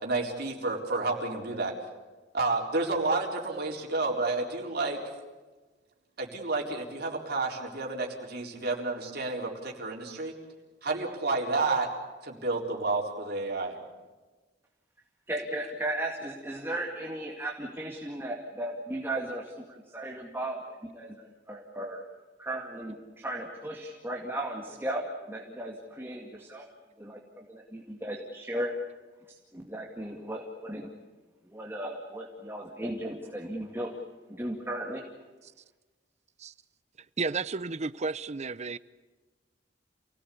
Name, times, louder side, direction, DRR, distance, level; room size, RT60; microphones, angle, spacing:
voice 1, 0.0-1.7 2.3-5.1 6.2-10.3 10.8-11.9 12.2-13.7, right 3 dB, 60° right, 4.1 m, -30 dB
voice 2, 15.3-22.0 22.4-26.7 27.0-28.7 29.5-30.9 31.4-34.0 34.3-35.0, right 1 dB, 15° right, 2.2 m, -36 dB
voice 3, 37.2-38.8, right 4 dB, 40° right, 0.7 m, -32 dB
28.0 x 18.0 x 8.5 m
head